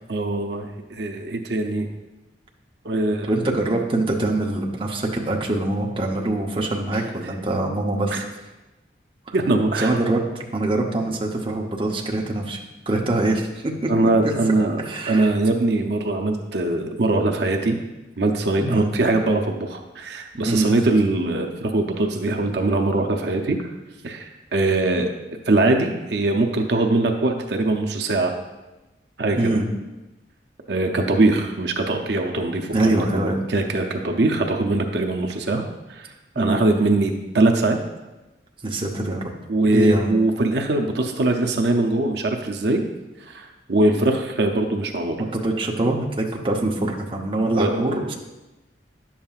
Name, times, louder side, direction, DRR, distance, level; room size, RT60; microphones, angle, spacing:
voice 1, 0.1-1.9 2.8-3.3 8.1-8.2 9.3-10.0 13.9-14.8 15.1-17.8 18.2-23.7 24.0-25.1 25.5-28.3 29.2-29.6 30.7-35.6 35.9-36.1 36.4-37.8 39.5-42.8 43.2-45.3 47.5-48.1, right 2 dB, 70° right, 3 dB, 0.6 m, -22 dB
voice 2, 3.3-8.2 9.3-9.4 9.8-12.6 12.9-13.9 14.2-15.3 18.6-18.9 20.5-20.7 29.4-29.7 32.7-33.4 36.4-36.6 38.6-39.3 39.7-40.1 45.3-48.1, right 2 dB, 30° right, -1 dB, 0.7 m, -24 dB
10.5 x 7.2 x 2.4 m, 1.1 s
head